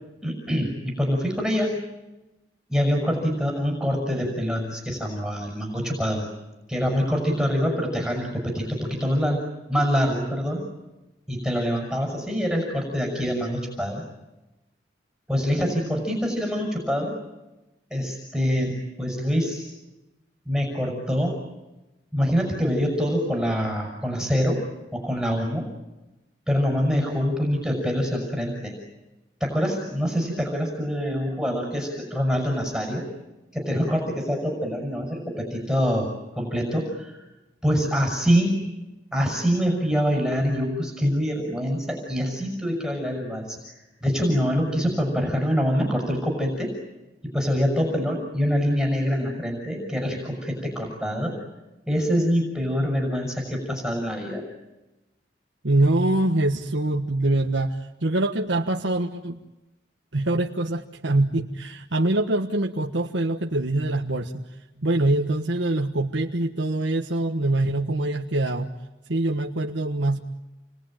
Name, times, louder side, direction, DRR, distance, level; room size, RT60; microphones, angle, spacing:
voice 1, 0.2-1.7 2.7-6.3 6.7-9.4 9.7-10.6 11.3-14.0 15.3-17.2 17.9-19.7 20.5-21.4 22.1-24.6 24.9-25.7 26.5-28.7 29.4-33.0 33.5-37.2 37.6-38.6 39.1-46.7 47.2-51.3 51.9-54.4, equal, 5° right, 2 dB, 6.3 m, -25 dB
voice 2, 55.6-59.4 60.1-64.4 64.8-68.7 69.1-70.2, right 2 dB, 75° right, 2 dB, 1.4 m, -24 dB
29.5 x 22.5 x 9.0 m, 1.0 s
head